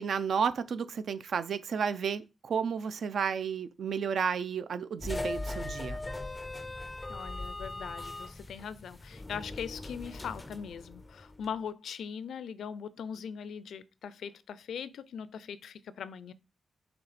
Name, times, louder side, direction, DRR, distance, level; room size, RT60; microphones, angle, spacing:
voice 1, 0.0-6.0, right 6 dB, 60° right, 0.5 m, -32 dB
sound 1, 5.0-11.5, left 2 dB, 15° left, 0.4 m, -40 dB
voice 2, 7.1-16.3, left 7 dB, 85° left, 0.4 m, -40 dB
6.7 x 3.4 x 4.1 m
wide cardioid pair, 155°, 0 cm